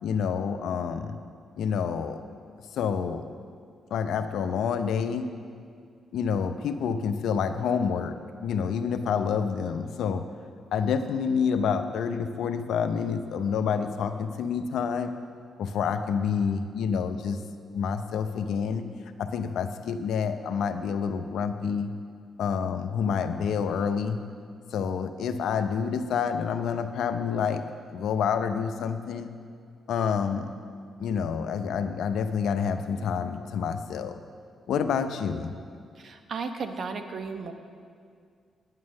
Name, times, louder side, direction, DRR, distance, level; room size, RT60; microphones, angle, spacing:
voice 1, 0.0-1.2 1.6-2.2 2.7-3.2 3.9-5.3 6.1-8.1 8.4-10.2 10.7-15.2 15.6-17.4 17.7-18.8 19.2-21.9 22.4-24.2 24.7-27.6 27.9-29.3 29.9-30.5 31.0-34.2 34.7-35.5, left 6 dB, 75° left, 8 dB, 0.7 m, -28 dB
voice 2, 35.9-37.5, right 4 dB, 60° right, 6 dB, 1.0 m, -34 dB
9.7 x 9.4 x 6.4 m, 2.2 s
supercardioid pair, 55°, 0 cm